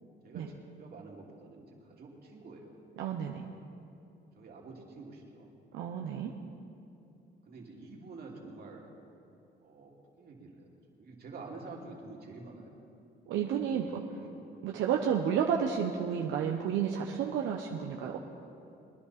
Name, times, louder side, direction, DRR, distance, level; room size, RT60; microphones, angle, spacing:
voice 1, 0.2-2.7 3.4-3.5 4.4-5.5 7.5-8.9 9.6-10.7 11.0-12.7 13.3-14.4 14.8-14.9, right 3 dB, 55° right, -2 dB, 2.8 m, -48 dB
voice 2, 3.0-3.4 5.7-6.3 13.3-14.0 14.6-18.2, right 8 dB, 85° right, 1 dB, 0.9 m, -31 dB
21.5 x 11.0 x 4.3 m, 2.8 s
cardioid pair, 100°, 19 cm